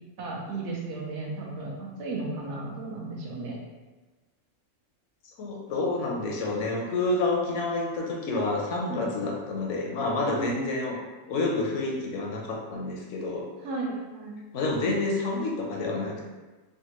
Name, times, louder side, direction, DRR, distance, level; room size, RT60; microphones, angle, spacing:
voice 1, 0.2-3.5 8.9-9.1 10.2-10.8 13.6-14.4, right 3 dB, 60° right, -2 dB, 0.9 m, -34 dB
voice 2, 5.4-11.0 11.3-13.5 14.5-16.2, left 2 dB, 70° left, -1 dB, 0.8 m, -28 dB
3.5 x 2.1 x 2.9 m, 1.2 s
omnidirectional pair, 1.5 m